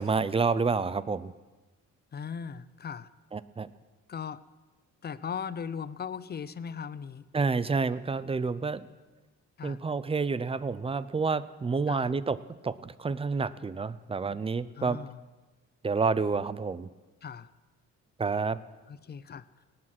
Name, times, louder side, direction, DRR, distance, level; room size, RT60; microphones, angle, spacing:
voice 1, 0.0-1.3 3.3-3.7 7.3-8.9 9.6-12.4 12.6-15.0 15.8-16.9 18.2-18.6, right 4 dB, 20° right, 17 dB, 0.5 m, -29 dB
voice 2, 2.1-3.1 4.1-4.4 5.0-7.2 9.6-9.8 11.9-12.1 14.8-15.2 17.2-17.5 18.9-19.4, left 7 dB, 35° left, 16 dB, 0.6 m, -38 dB
18.5 x 8.7 x 6.0 m, 1.2 s
cardioid pair, 90°, 30 cm